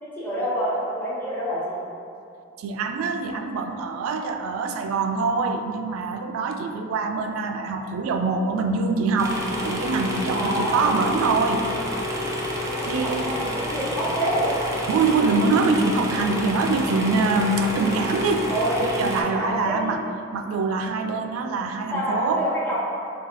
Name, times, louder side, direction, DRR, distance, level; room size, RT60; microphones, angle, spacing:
voice 1, 0.0-1.8 10.3-10.9 12.7-14.5 18.5-18.8 19.3-19.9 21.9-22.8, equal, 10° left, -8 dB, 0.9 m, -27 dB
voice 2, 2.6-11.7 12.9-13.3 14.9-18.5 19.0-20.1 20.3-22.5, right 4 dB, 90° right, 7 dB, 0.3 m, -24 dB
sound 1, 9.2-19.2, left 1 dB, 15° right, 0.5 m, -29 dB
4.9 x 2.3 x 3.8 m, 2.5 s
head